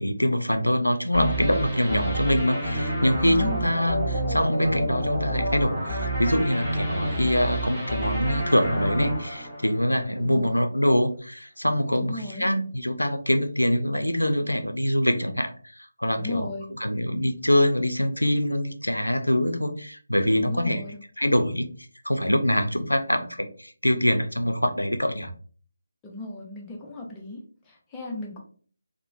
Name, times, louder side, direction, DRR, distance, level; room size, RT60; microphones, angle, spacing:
voice 1, 0.0-20.8 21.2-21.7 22.0-25.3, equal, 90° left, 7 dB, 0.4 m, -24 dB
sound 1, 1.1-10.2, right 1 dB, 5° right, 1.0 m, -29 dB
voice 2, 3.2-3.7 10.2-10.7 11.9-12.5 16.2-16.7 20.4-21.0 26.0-28.4, left 2 dB, 10° left, -2 dB, 0.6 m, -36 dB
3.0 x 2.1 x 2.3 m, 0.43 s
figure-of-eight pair, 155°, 0 cm